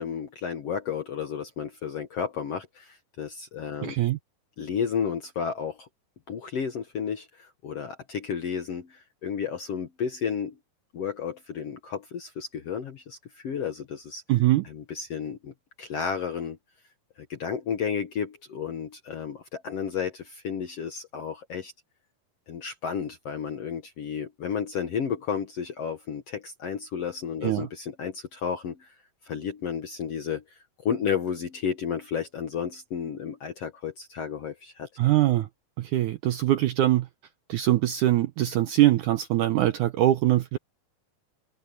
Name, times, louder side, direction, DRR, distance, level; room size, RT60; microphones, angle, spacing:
voice 1, 0.0-3.9 4.6-5.9 6.3-10.5 10.9-14.2 14.6-16.6 17.3-21.7 22.5-28.9 29.2-30.4 30.8-34.9, left 7 dB, 60° left, 1.6 m, -32 dB
voice 2, 3.8-4.2 14.3-14.7 27.4-27.7 35.0-35.5 35.8-37.1 37.5-40.6, right 14 dB, 80° right, 1.8 m, -22 dB
omnidirectional pair, 4.4 m